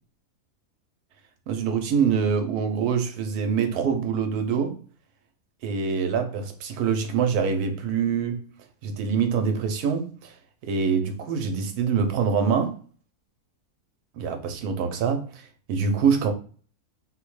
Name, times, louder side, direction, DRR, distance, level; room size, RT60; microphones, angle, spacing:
voice 1, 1.5-4.8 5.6-8.5 8.8-10.3 10.6-12.8 14.1-16.3, right 6 dB, 75° right, 1.1 m, -25 dB
3.6 x 2.1 x 3.1 m
omnidirectional pair, 1.7 m